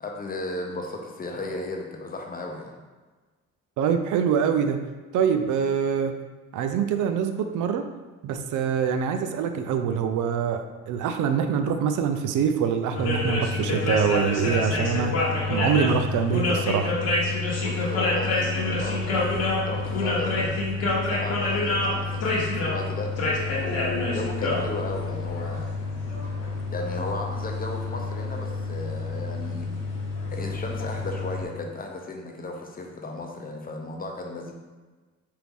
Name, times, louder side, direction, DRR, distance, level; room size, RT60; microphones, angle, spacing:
voice 1, 0.0-2.7 17.6-20.6 21.1-23.1 23.6-25.7 26.7-29.7 30.3-34.5, left 2 dB, 30° left, 1 dB, 0.7 m, -35 dB
voice 2, 3.8-4.8 5.1-6.2 6.5-7.8 8.2-15.1 15.5-17.0, right 7 dB, 80° right, 7 dB, 0.5 m, -24 dB
sound 1, 12.9-31.4, left 2 dB, 55° left, 1.0 m, -27 dB
4.5 x 2.6 x 3.5 m, 1.3 s
cardioid pair, 90°, 30 cm